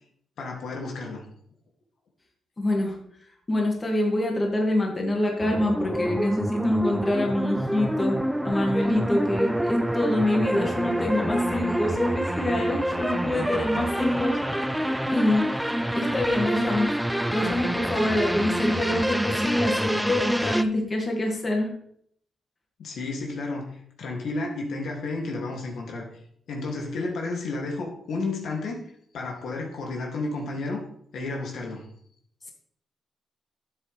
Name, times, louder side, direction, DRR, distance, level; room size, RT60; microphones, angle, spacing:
voice 1, 0.4-1.2 22.8-23.7 24.0-26.1 26.5-28.9 29.1-30.8 31.1-31.8, left 3 dB, 75° left, 0 dB, 2.6 m, -31 dB
voice 2, 2.6-3.0 3.5-8.2 8.4-17.0 17.3-21.7, left 1 dB, 25° left, 0 dB, 2.3 m, -26 dB
sound 1, 5.4-20.6, right 1 dB, 5° right, 0.5 m, -27 dB
12.0 x 7.8 x 3.5 m, 0.66 s
cardioid pair, 100°, 0 cm